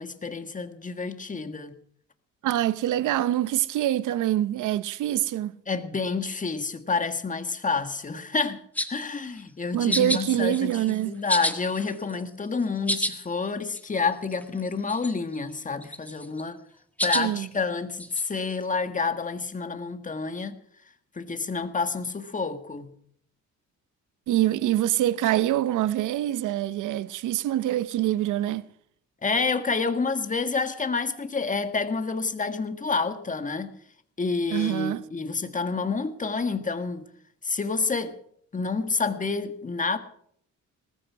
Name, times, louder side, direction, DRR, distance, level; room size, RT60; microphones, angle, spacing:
voice 1, 0.0-1.8 5.7-8.6 8.9-10.8 11.0-16.6 17.0-20.6 21.1-22.9 29.2-33.7 34.2-37.1 37.4-38.1 38.5-40.0, left 4 dB, 25° left, 1.7 m, -28 dB
voice 2, 2.4-5.5 9.7-11.1 17.1-17.5 24.3-28.7 34.5-35.0, right 13 dB, 80° right, 0.9 m, -25 dB
sound 1, 8.7-9.1 9.9-10.2 10.5-11.0 11.3-12.3 12.6-13.1 13.5-13.6 13.7-13.8 14.2-14.6 14.9-15.3 15.8-16.4 17.0-17.2 18.0-18.2, equal, 5° left, 1.8 m, -29 dB
19.0 x 14.5 x 4.8 m
cardioid pair, 90°, 30 cm